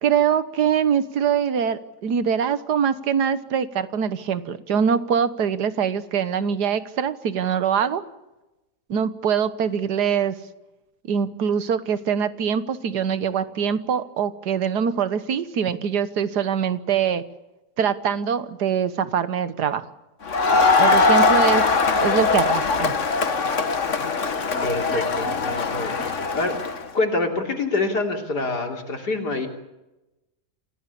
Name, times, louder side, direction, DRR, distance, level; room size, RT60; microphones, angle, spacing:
voice 1, 0.0-8.0 8.9-10.4 11.1-17.2 17.8-19.9 20.8-21.7 22.0-22.9, right 7 dB, 70° right, 13 dB, 1.7 m, -23 dB
Crowd, 20.3-26.8, left 4 dB, 45° left, 1.7 m, -21 dB
voice 2, 24.6-26.6 26.9-29.5, left 2 dB, 70° left, 3 dB, 3.8 m, -26 dB
28.0 x 17.0 x 8.5 m, 1.0 s
omnidirectional pair, 1.8 m